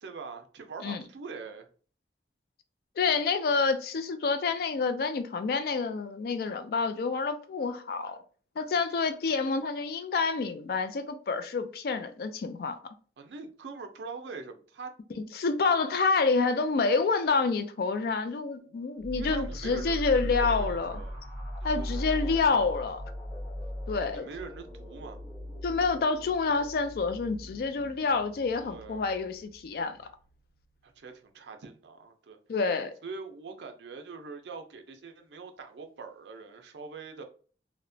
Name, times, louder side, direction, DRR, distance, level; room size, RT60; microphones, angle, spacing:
voice 1, 0.0-1.7 13.2-14.9 19.2-21.2 21.6-22.6 24.0-25.2 28.6-29.1 30.8-32.4 33.0-37.2, right 4 dB, 75° right, 0.5 m, -43 dB
voice 2, 3.0-8.2 8.6-12.8 15.2-20.9 21.6-23.0 23.9-24.3 25.6-30.0 32.5-32.9, left 4 dB, 55° left, 0.3 m, -28 dB
sound 1, 19.0-30.3, equal, ahead, 0.7 m, -38 dB
2.9 x 2.1 x 2.6 m
head